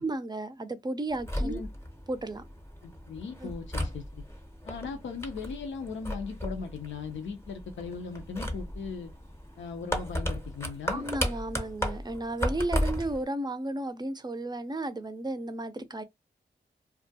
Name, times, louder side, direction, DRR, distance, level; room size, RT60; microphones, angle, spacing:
voice 1, 0.0-1.6 2.1-2.5 3.4-3.5 10.9-16.0, right 2 dB, 20° right, 0.5 m, -33 dB
sound 1, 1.1-13.2, equal, 15° left, 0.7 m, -35 dB
voice 2, 2.8-4.2 4.7-9.1 9.6-11.1, left 5 dB, 90° left, 0.5 m, -38 dB
2.3 x 2.1 x 2.7 m
cardioid pair, 45°, 19 cm